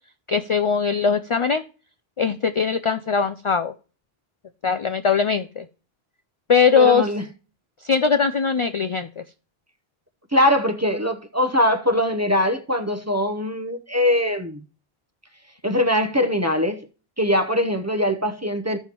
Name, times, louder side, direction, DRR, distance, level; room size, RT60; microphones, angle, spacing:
voice 1, 0.3-1.6 2.2-3.7 4.6-5.7 6.5-7.1 7.8-9.2, left 6 dB, 55° left, 0.3 m, -20 dB
voice 2, 6.8-7.2 10.3-14.6 15.6-16.8 17.2-18.8, left 1 dB, 20° right, 0.6 m, -22 dB
15.5 x 5.6 x 2.9 m
omnidirectional pair, 1.0 m